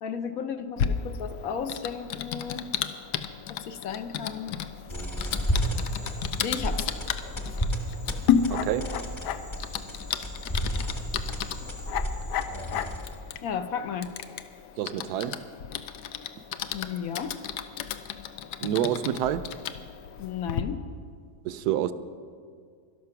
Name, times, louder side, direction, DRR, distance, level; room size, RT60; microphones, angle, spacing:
voice 1, 0.0-2.7 3.7-4.5 6.4-6.9 13.4-14.1 16.7-17.3 20.2-20.8, left 7 dB, 65° left, 10 dB, 1.0 m, -33 dB
Typing, 0.8-20.6, left 8 dB, 90° left, 1.2 m, -33 dB
sound 1, 4.9-13.3, equal, 20° left, 0.9 m, -32 dB
voice 2, 8.5-8.9 14.8-15.4 18.6-19.5 21.4-21.9, right 11 dB, 75° right, 13 dB, 1.1 m, -28 dB
12.5 x 11.5 x 5.8 m, 2.2 s
omnidirectional pair, 1.8 m